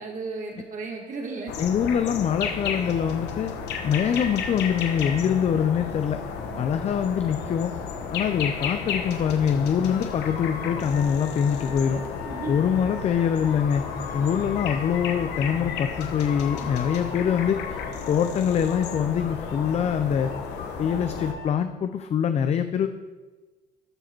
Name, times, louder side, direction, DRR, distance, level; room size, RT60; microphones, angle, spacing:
voice 1, 0.0-1.5 6.4-6.7 12.2-12.6, right 3 dB, 50° right, 0 dB, 1.8 m, -35 dB
sound 1, 1.5-21.3, left 6 dB, 85° left, 1.1 m, -33 dB
voice 2, 1.6-3.5 3.8-6.2 6.6-7.7 8.1-12.0 12.5-13.8 14.1-17.8 18.1-20.3 20.8-22.9, left 8 dB, 40° left, 9 dB, 0.4 m, -24 dB
sound 2, 9.9-15.6 16.0-18.3 18.6-21.5, left 5 dB, 65° left, 1.3 m, -40 dB
13.0 x 4.8 x 4.5 m, 1.3 s
cardioid pair, 110°, 17 cm